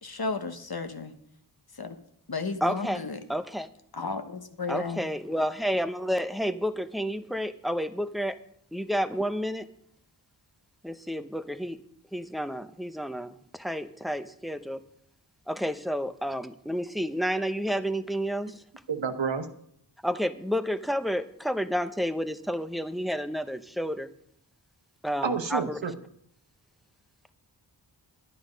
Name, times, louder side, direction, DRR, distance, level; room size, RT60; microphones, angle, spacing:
voice 1, 0.0-1.1 1.8-2.0 2.3-3.2 3.9-5.1, left 4 dB, 55° left, 1.1 m, -33 dB
voice 2, 2.6-3.7 4.7-8.4 8.7-9.7 10.8-11.8 12.1-14.8 15.5-18.6 20.0-24.1 25.0-25.8, equal, ahead, 0.7 m, -30 dB
voice 3, 18.9-19.5 25.2-25.9, right 5 dB, 85° right, 1.0 m, -29 dB
11.0 x 9.5 x 5.2 m
wide cardioid pair, 45°, 44 cm